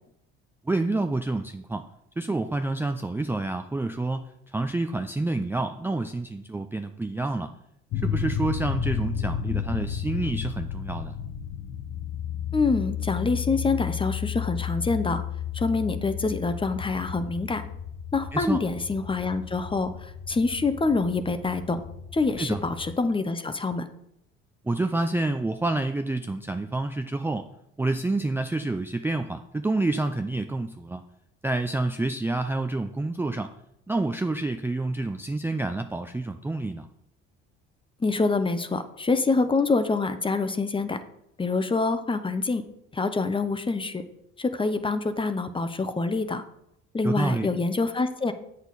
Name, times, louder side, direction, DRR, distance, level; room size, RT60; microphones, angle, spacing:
voice 1, 0.6-1.9 2.2-7.5 7.9-11.2 18.3-18.6 22.4-22.6 24.6-27.5 27.8-31.0 31.4-33.5 33.9-36.9 47.0-47.5, right 2 dB, 10° right, 6 dB, 0.4 m, -28 dB
sound 1, 7.9-22.9, left 8 dB, 65° left, 1.0 m, -33 dB
voice 2, 12.5-15.2 15.5-17.6 18.1-21.8 22.1-23.9 38.0-41.0 41.4-42.6 42.9-44.0 44.4-46.4 46.9-48.3, left 3 dB, 20° left, 10 dB, 0.7 m, -26 dB
7.8 x 6.5 x 4.0 m, 0.79 s
supercardioid pair, 80°, 29 cm